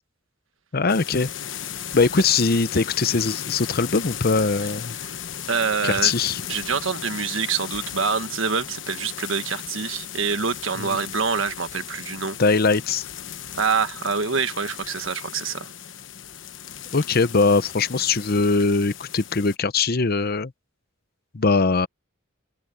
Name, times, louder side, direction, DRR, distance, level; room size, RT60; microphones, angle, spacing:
voice 1, 0.7-1.3 1.9-4.9 5.8-6.4 10.8-11.0 12.4-13.1 16.9-20.5 21.3-21.9, left 4 dB, 50° left, 0.8 m, -21 dB
sound 1, 0.9-19.6, left 9 dB, 65° left, 1.1 m, -36 dB
voice 2, 5.5-6.1 6.5-12.4 13.6-15.7, right 5 dB, 75° right, 1.5 m, -26 dB
open air
head